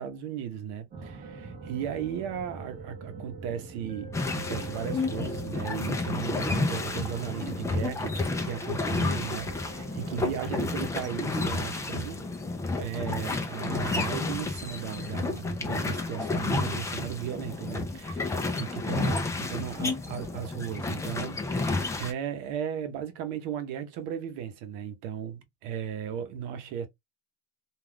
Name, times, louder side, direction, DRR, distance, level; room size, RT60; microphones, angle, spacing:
voice 1, 0.0-12.2 12.8-26.9, right 9 dB, 60° right, 0.8 m, -36 dB
sound 1, 0.9-18.2 19.8-19.9 20.2-20.3, right 3 dB, 25° right, 0.8 m, -44 dB
sound 2, 4.1-22.1, left 3 dB, 10° left, 0.4 m, -31 dB
2.5 x 2.3 x 3.3 m
supercardioid pair, 125°, 33 cm